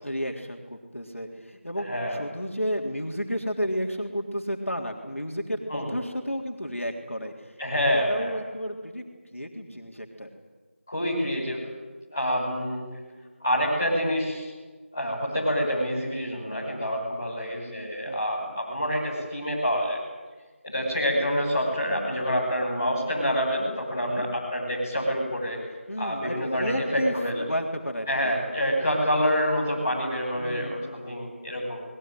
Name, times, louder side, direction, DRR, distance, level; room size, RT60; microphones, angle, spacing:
voice 1, 0.0-7.6 7.9-9.0 9.3-10.3 18.1-18.3 24.1-24.3 25.9-28.3 30.4-31.4, equal, 80° left, 2 dB, 3.5 m, -32 dB
voice 2, 1.9-2.2 5.7-5.9 7.6-8.4 10.9-11.7 12.1-12.9 13.4-14.5 14.9-20.0 20.6-25.6 26.0-27.4 28.1-31.8, equal, 15° left, -8 dB, 5.6 m, -27 dB
21.0 x 20.0 x 9.3 m, 1.3 s
figure-of-eight pair, 175°, 7 cm